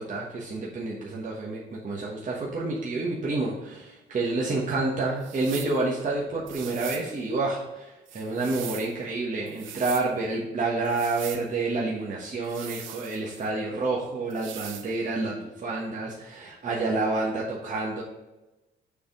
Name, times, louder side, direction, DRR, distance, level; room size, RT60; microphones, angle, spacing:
voice 1, 0.0-18.0, right 3 dB, 40° right, -4 dB, 1.3 m, -29 dB
sound 1, 5.2-5.8 6.5-7.1 8.1-8.9 9.5-10.1 10.8-11.4 12.4-13.5 14.3-14.9, right 10 dB, 80° right, 0.7 m, -41 dB
6.8 x 3.5 x 5.1 m, 1.0 s
cardioid pair, 90°, 20 cm